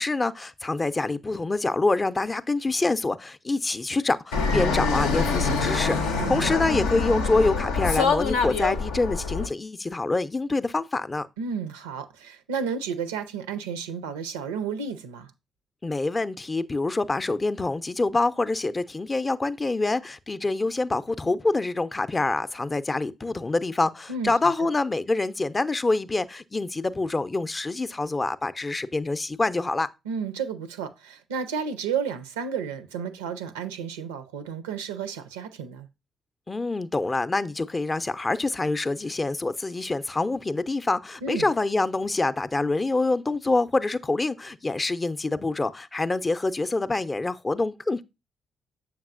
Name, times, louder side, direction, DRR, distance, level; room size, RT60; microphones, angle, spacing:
voice 1, 0.0-11.3 15.8-29.9 36.5-48.0, left 3 dB, 30° left, 0.5 m, -26 dB
Fixed-wing aircraft airplane, 4.3-9.5, left 4 dB, 80° left, 0.6 m, -25 dB
voice 2, 6.2-6.5 11.4-15.3 24.1-24.3 30.1-35.9 41.2-41.5, right 6 dB, 80° right, 0.5 m, -32 dB
7.3 x 5.9 x 2.5 m
figure-of-eight pair, 40°, 0 cm